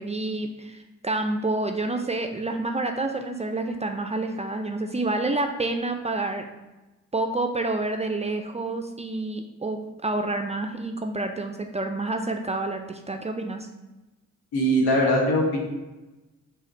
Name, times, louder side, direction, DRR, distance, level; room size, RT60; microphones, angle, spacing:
voice 1, 0.0-6.4 7.1-13.7, right 2 dB, 20° right, 5 dB, 0.3 m, -28 dB
voice 2, 14.5-15.6, equal, 80° left, -1 dB, 1.0 m, -21 dB
4.8 x 2.2 x 4.1 m, 1.1 s
hypercardioid pair, 45°, 38 cm